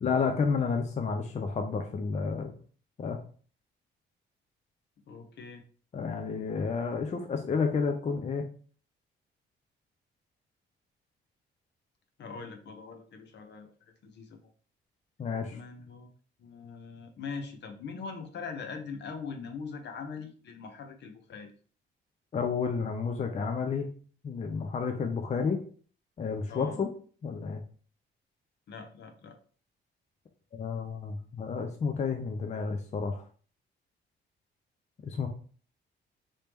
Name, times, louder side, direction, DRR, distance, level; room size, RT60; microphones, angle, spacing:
voice 1, 0.0-2.5 3.0-3.2 5.9-8.5 15.2-15.6 22.3-23.9 24.2-25.6 26.2-26.9 27.2-27.6 30.5-33.2 35.0-35.3, left 5 dB, 35° left, 4 dB, 0.5 m, -31 dB
voice 2, 5.1-5.6 12.2-14.4 15.5-16.1 16.4-21.5 26.5-26.8 28.7-29.4, left 5 dB, 60° left, 6 dB, 0.8 m, -42 dB
3.2 x 2.7 x 3.4 m, 0.43 s
cardioid pair, 90°, 20 cm